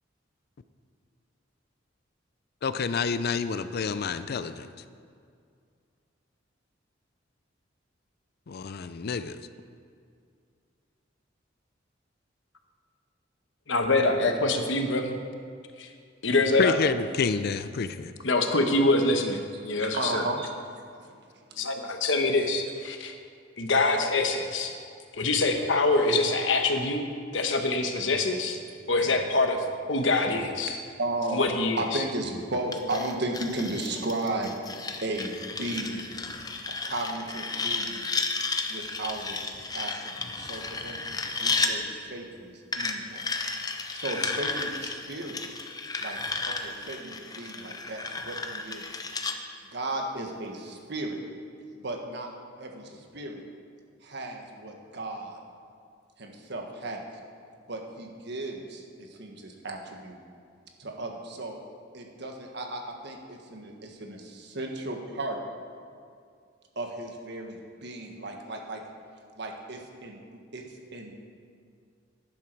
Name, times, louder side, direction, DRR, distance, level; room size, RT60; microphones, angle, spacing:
voice 1, 2.6-4.7 8.5-9.4 16.6-18.1, left 5 dB, 55° left, 12 dB, 0.4 m, -28 dB
voice 2, 13.7-15.2 15.8-15.9 16.2-16.8 18.2-20.2 21.6-23.1 23.6-24.7 25.1-27.1 27.3-28.6 28.9-30.8 31.3-32.0, left 2 dB, 75° left, 5 dB, 1.1 m, -25 dB
voice 3, 19.7-21.0 21.3-21.6 29.0-29.2 31.0-31.4 31.8-34.6 35.0-36.1 36.7-38.1 38.7-43.2 43.9-45.4 46.0-46.2 46.5-48.8 49.7-51.2 51.8-52.3 52.6-53.4 54.0-55.4 56.2-57.0 57.7-60.2 60.8-61.6 61.9-65.4 66.7-68.8 69.4-70.2 70.5-70.6 70.9-71.1, right 2 dB, 65° right, 2 dB, 1.5 m, -35 dB
sound 1, 32.7-41.7 42.7-49.4, left 3 dB, 20° left, 0.7 m, -33 dB
11.5 x 10.5 x 4.6 m, 2.3 s
head